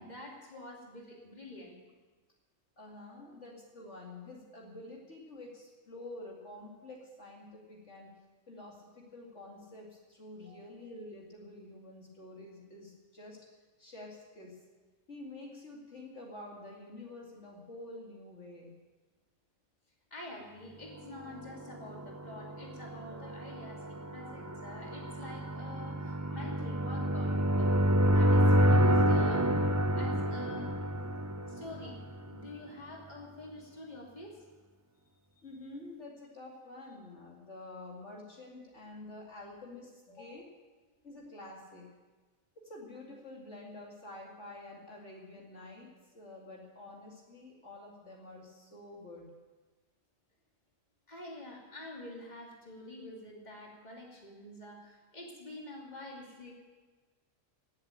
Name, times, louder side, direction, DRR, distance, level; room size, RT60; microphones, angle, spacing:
voice 1, 0.0-1.8 3.2-3.3 10.4-10.8 20.1-27.7 28.1-29.5 29.9-30.8 31.5-34.4 35.3-35.5 40.1-40.4 51.1-56.5, left 2 dB, 30° left, -2 dB, 2.9 m, -47 dB
voice 2, 2.8-8.1 8.5-13.4 13.8-14.6 15.1-18.7 35.4-40.4 41.0-41.9 42.6-49.3, left 2 dB, 60° left, -2 dB, 2.8 m, -48 dB
sound 1, 21.6-32.4, equal, 20° right, 0.4 m, -28 dB
17.5 x 7.7 x 8.9 m, 1.3 s
omnidirectional pair, 1.4 m